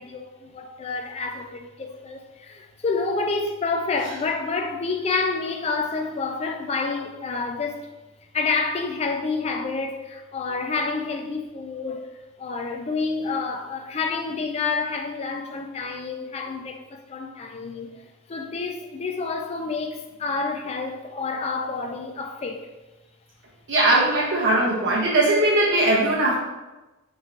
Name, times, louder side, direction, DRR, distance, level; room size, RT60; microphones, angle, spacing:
voice 1, 0.0-7.9 8.3-12.1 12.4-18.0 18.3-22.7, left 4 dB, 30° left, 4 dB, 0.3 m, -28 dB
voice 2, 23.7-26.3, right 2 dB, 55° right, -5 dB, 0.6 m, -20 dB
4.3 x 3.1 x 2.4 m, 1.1 s
head